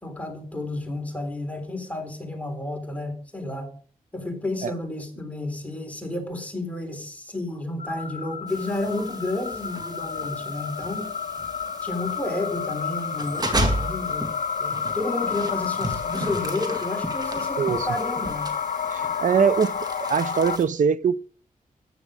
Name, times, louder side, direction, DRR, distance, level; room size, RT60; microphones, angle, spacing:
voice 1, 0.0-3.7 4.1-11.1 11.8-14.3 14.6-18.5, left 2 dB, 10° left, 3.7 m, -31 dB
sound 1, 7.8-20.6, left 7 dB, 70° left, 1.1 m, -30 dB
sound 2, 8.5-20.7, right 1 dB, 30° right, 2.1 m, -34 dB
voice 2, 17.6-17.9 18.9-21.2, right 7 dB, 65° right, 0.6 m, -22 dB
13.5 x 9.6 x 5.0 m
wide cardioid pair, 120°, 14 cm